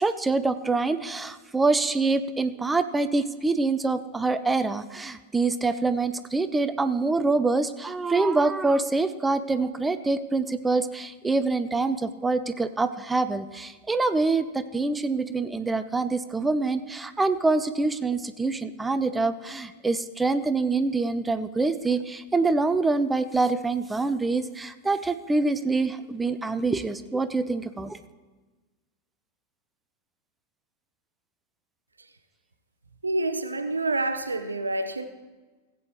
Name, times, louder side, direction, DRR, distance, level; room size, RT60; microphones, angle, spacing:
voice 1, 0.0-28.0, right 3 dB, 10° right, 12 dB, 0.5 m, -25 dB
voice 2, 33.0-35.0, right 2 dB, 80° right, 10 dB, 0.6 m, -27 dB
16.5 x 8.5 x 3.1 m, 1.3 s
figure-of-eight pair, 90°, 0 cm